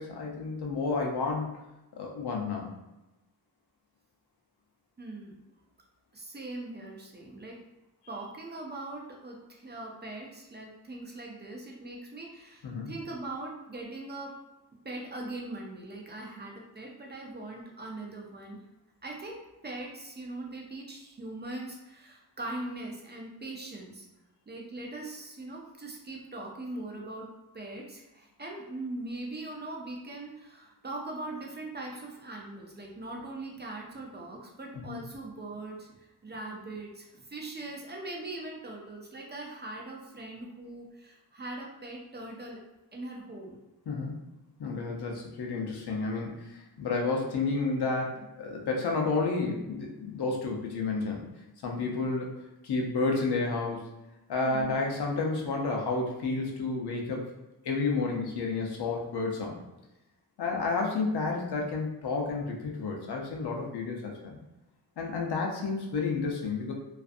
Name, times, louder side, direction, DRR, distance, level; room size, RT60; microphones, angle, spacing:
voice 1, 0.0-1.5 2.0-2.7 12.6-12.9 34.9-35.0 43.9-44.2 44.6-46.4 46.8-51.3 51.6-52.4 52.6-53.8 54.3-57.3 57.6-59.6 60.4-64.4 65.0-66.7, left 3 dB, 80° left, 0 dB, 0.6 m, -31 dB
voice 2, 5.0-5.3 6.1-7.6 8.1-14.3 14.8-18.6 19.0-24.1 24.5-27.3 27.5-42.6 42.9-43.6 54.4-54.8, right 2 dB, 30° right, -1 dB, 0.4 m, -41 dB
2.5 x 2.4 x 2.4 m, 0.98 s
wide cardioid pair, 125°, 39 cm